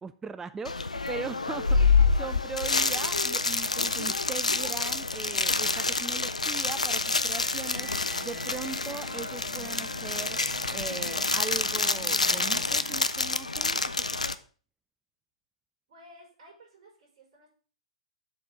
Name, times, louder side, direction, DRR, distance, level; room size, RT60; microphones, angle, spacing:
voice 1, 0.0-10.4 10.7-14.1, right 5 dB, 10° right, 12 dB, 0.4 m, -40 dB
sound 1, 0.6-14.3, left 4 dB, 90° left, 0.5 m, -27 dB
sound 2, 7.7-13.0, right 2 dB, 45° right, 2.4 m, -46 dB
voice 2, 15.9-17.5, equal, 60° right, -3 dB, 4.9 m, -54 dB
7.3 x 4.3 x 6.3 m, 0.39 s
figure-of-eight pair, 110°, 4 cm